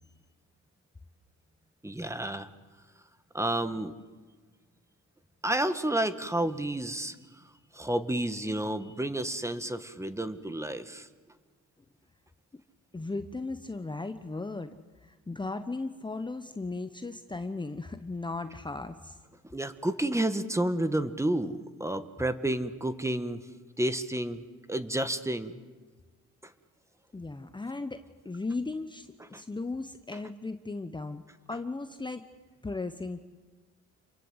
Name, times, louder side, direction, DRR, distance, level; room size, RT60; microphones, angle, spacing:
voice 1, 1.8-2.5 3.3-3.9 5.4-7.5 7.7-11.1 19.5-23.4 23.8-25.6 29.3-29.4, right 1 dB, 10° right, 11 dB, 1.7 m, -30 dB
voice 2, 12.9-14.8 15.0-19.2 27.1-31.2 31.5-32.3 32.6-33.2, left 3 dB, 15° left, 9 dB, 1.1 m, -36 dB
29.0 x 23.0 x 8.2 m, 1.4 s
cardioid pair, 90°, 30 cm